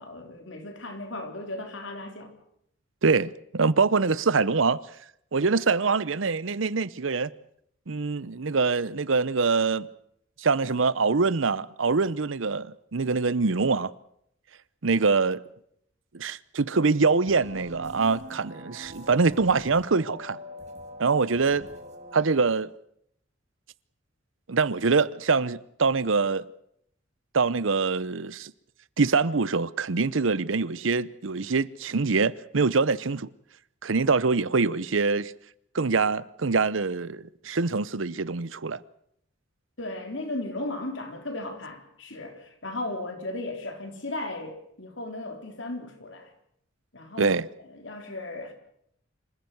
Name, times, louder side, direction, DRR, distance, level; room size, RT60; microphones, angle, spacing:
voice 1, 0.0-2.3 39.8-46.3 46.9-47.4 47.6-48.5, left 2 dB, 70° left, 3.9 m, -36 dB
voice 2, 3.0-4.8 5.3-7.3 7.9-9.9 10.4-13.9 14.8-15.4 16.1-20.4 21.0-21.7 22.1-22.7 24.5-26.4 27.3-28.5 29.0-33.3 33.8-35.3 35.7-38.8 47.2-47.5, right 4 dB, 80° right, 0.8 m, -24 dB
sound 1, 17.2-22.3, left 1 dB, 35° right, 3.2 m, -44 dB
26.5 x 15.0 x 8.0 m
head